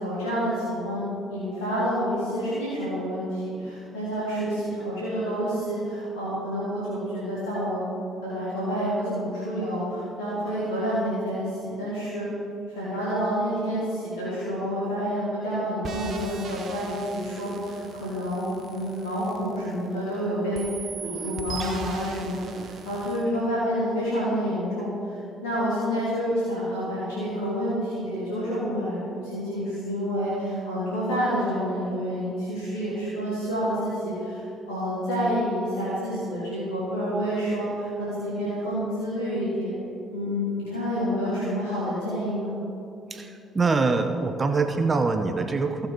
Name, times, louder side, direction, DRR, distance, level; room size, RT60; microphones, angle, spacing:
voice 1, 0.0-7.8 8.2-12.3 12.7-20.6 21.0-34.4 34.7-39.7 40.1-42.5, equal, 85° left, -10 dB, 2.6 m, -28 dB
sound 1, 15.8-20.1 20.5-23.2, right 4 dB, 55° right, 1.0 m, -40 dB
voice 2, 43.1-45.9, right 4 dB, 35° right, 6 dB, 0.7 m, -24 dB
15.5 x 7.0 x 3.9 m, 2.7 s
hypercardioid pair, 55°, 0 cm